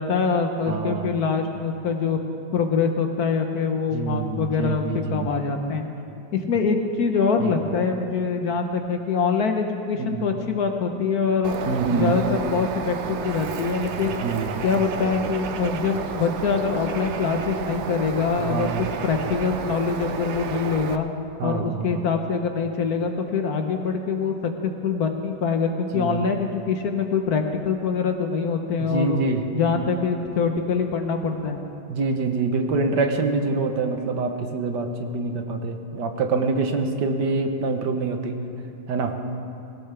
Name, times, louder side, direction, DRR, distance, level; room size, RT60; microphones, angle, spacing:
voice 1, 0.0-2.2 2.5-5.8 6.3-11.5 11.9-14.2 14.6-21.1 21.4-29.2 29.5-31.6, left 5 dB, 60° left, 5 dB, 1.4 m, -24 dB
voice 2, 0.7-1.1 3.9-5.3 7.4-7.5 10.0-10.2 11.7-12.2 14.2-14.5 18.5-18.9 21.4-22.1 25.9-26.2 28.8-29.4 29.7-29.8 31.9-38.4 38.9-39.1, right 4 dB, 70° right, 5 dB, 1.6 m, -25 dB
Bird, 11.4-21.0, right 6 dB, 85° right, 0.6 m, -31 dB
20.5 x 17.5 x 3.4 m, 2.6 s
omnidirectional pair, 2.0 m